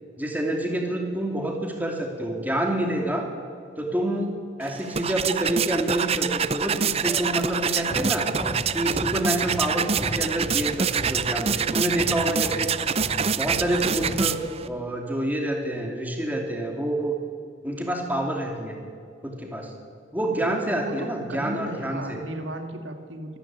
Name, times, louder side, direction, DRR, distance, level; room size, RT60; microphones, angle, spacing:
voice 1, 0.2-3.2 3.8-4.3 4.6-8.3 8.7-12.7 13.3-14.4 14.6-17.1 17.6-18.8 19.2-19.7 20.1-22.2, right 1 dB, 10° right, 2 dB, 2.8 m, -27 dB
sound 1, 4.6-14.7, right 6 dB, 35° right, 0.6 m, -26 dB
sound 2, 7.0-14.7, equal, 15° left, 2.8 m, -37 dB
voice 2, 20.8-23.4, right 1 dB, 90° right, 6 dB, 2.1 m, -35 dB
24.0 x 13.5 x 8.9 m, 2.2 s
head